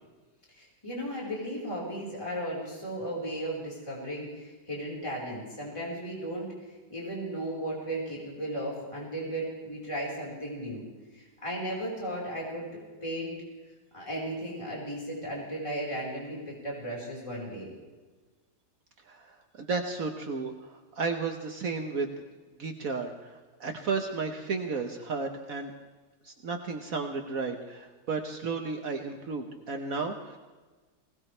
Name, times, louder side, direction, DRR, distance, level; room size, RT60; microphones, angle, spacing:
voice 1, 0.5-6.5 6.9-10.8 11.1-13.4 13.9-17.7, right 1 dB, 15° left, -4 dB, 4.6 m, -35 dB
voice 2, 19.6-22.1 22.6-23.3 23.6-25.7 26.2-30.5, right 4 dB, 60° right, 4 dB, 1.5 m, -33 dB
21.5 x 18.5 x 3.3 m, 1.3 s
omnidirectional pair, 1.7 m